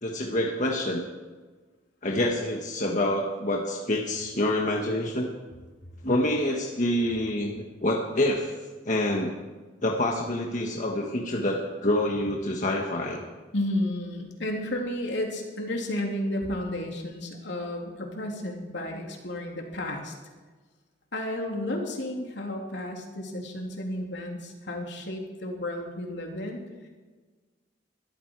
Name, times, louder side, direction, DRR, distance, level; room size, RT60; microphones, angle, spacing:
voice 1, 0.0-1.0 2.0-5.3 6.0-7.5 7.8-8.5 8.8-9.4 9.8-13.2, left 1 dB, 45° left, 0 dB, 1.5 m, -27 dB
voice 2, 13.5-20.1 21.1-26.9, left 1 dB, 70° left, 0 dB, 3.3 m, -32 dB
21.0 x 14.0 x 4.8 m, 1.3 s
head